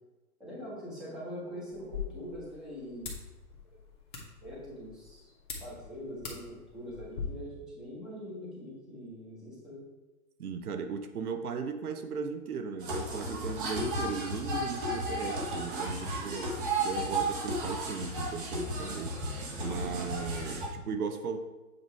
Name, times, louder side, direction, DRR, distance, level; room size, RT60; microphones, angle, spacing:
voice 1, 0.4-3.1 4.4-5.3 5.6-9.8, equal, ahead, -9 dB, 0.9 m, -43 dB
sound 1, 1.7-7.2, left 6 dB, 35° left, 1.2 m, -44 dB
voice 2, 10.4-19.2 19.6-21.4, right 6 dB, 75° right, 7 dB, 0.8 m, -37 dB
sound 2, 12.8-20.7, right 1 dB, 35° right, 1.1 m, -34 dB
7.9 x 2.7 x 4.5 m, 1.1 s
hypercardioid pair, 150°, 45 cm